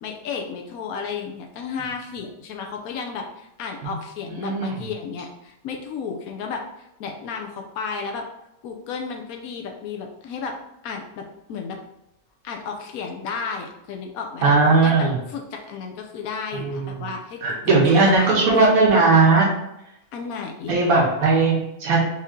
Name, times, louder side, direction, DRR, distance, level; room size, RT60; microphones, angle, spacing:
voice 1, 0.0-8.2 8.6-10.6 10.8-11.8 12.4-18.3 18.7-19.0 20.1-20.8, left 5 dB, 90° left, 2 dB, 1.1 m, -33 dB
voice 2, 4.3-4.7 14.4-15.1 16.5-17.0 17.4-19.5 20.7-22.0, right 3 dB, 90° right, -3 dB, 1.5 m, -18 dB
5.3 x 2.7 x 3.7 m, 0.85 s
omnidirectional pair, 1.5 m